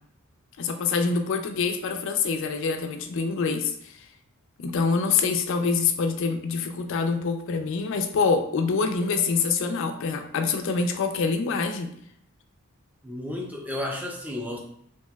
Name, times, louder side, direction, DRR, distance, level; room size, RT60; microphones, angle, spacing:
voice 1, 0.6-4.1 4.6-11.9, left 5 dB, 60° left, 6 dB, 0.3 m, -25 dB
voice 2, 13.0-14.6, left 1 dB, 5° right, 1 dB, 0.4 m, -32 dB
3.1 x 2.8 x 2.2 m, 0.67 s
head